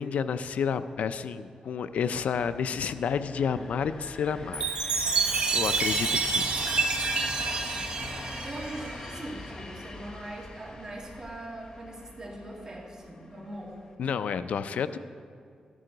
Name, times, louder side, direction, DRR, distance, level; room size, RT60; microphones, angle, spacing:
voice 1, 0.0-4.6 5.5-6.5 14.0-15.0, left 6 dB, 75° left, 12 dB, 0.4 m, -30 dB
sound 1, 2.0-13.9, left 2 dB, 35° left, 1.1 m, -42 dB
Chime, 4.5-9.1, right 4 dB, 45° right, 1.2 m, -28 dB
voice 2, 8.4-13.8, right 1 dB, 30° right, -2 dB, 2.1 m, -41 dB
14.0 x 11.0 x 3.9 m, 2.3 s
wide cardioid pair, 140°, 2 cm